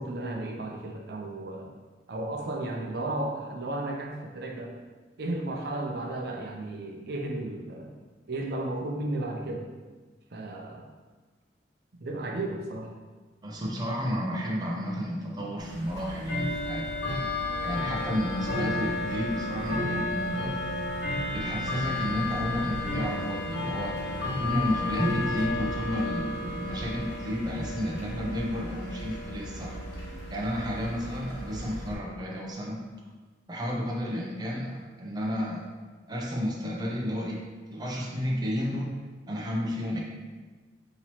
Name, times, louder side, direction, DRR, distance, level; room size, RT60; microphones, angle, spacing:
voice 1, 0.0-1.7 2.1-4.7 5.2-7.9 8.3-9.6 10.3-10.9 12.0-12.9, right 2 dB, 65° right, 0 dB, 0.6 m, -34 dB
voice 2, 13.4-17.0 17.6-20.6 21.3-29.8 30.3-32.8 33.5-35.7 36.1-39.0 39.3-40.0, equal, 25° right, -2 dB, 0.6 m, -32 dB
Bell / Tick-tock, 15.6-31.9, left 1 dB, 85° left, 1.1 m, -33 dB
5.7 x 3.0 x 2.9 m, 1.3 s
head